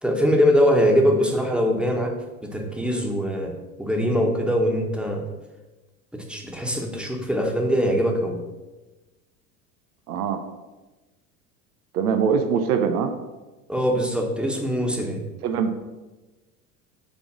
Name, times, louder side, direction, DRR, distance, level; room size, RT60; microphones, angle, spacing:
voice 1, 0.0-2.1 2.4-3.5 3.8-5.2 6.1-8.4 13.7-15.2, equal, ahead, 1 dB, 1.5 m, -22 dB
voice 2, 10.1-10.4 11.9-13.1 15.4-15.7, right 6 dB, 75° right, 7 dB, 0.9 m, -22 dB
7.5 x 3.8 x 6.2 m, 1.1 s
hypercardioid pair, 85°, 45 cm